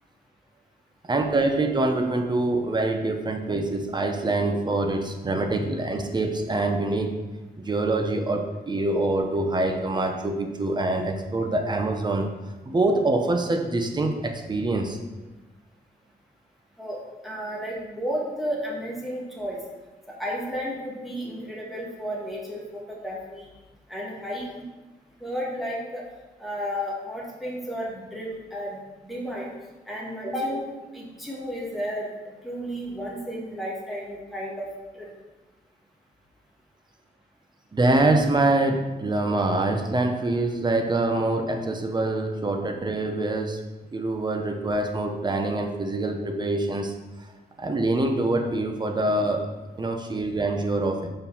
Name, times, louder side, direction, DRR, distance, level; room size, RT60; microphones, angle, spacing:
voice 1, 1.0-7.2 7.6-12.3 12.6-15.0 37.7-43.6 43.9-46.9 47.6-49.5 49.8-51.1, right 2 dB, 25° right, 4 dB, 0.8 m, -25 dB
voice 2, 16.8-19.6 20.2-23.5 23.9-24.7 25.2-26.0 26.4-29.5 29.9-30.7 30.9-32.1 32.4-34.7 34.9-35.1, equal, ahead, -5 dB, 1.7 m, -32 dB
5.4 x 4.7 x 5.5 m, 1.2 s
wide cardioid pair, 130°, 16 cm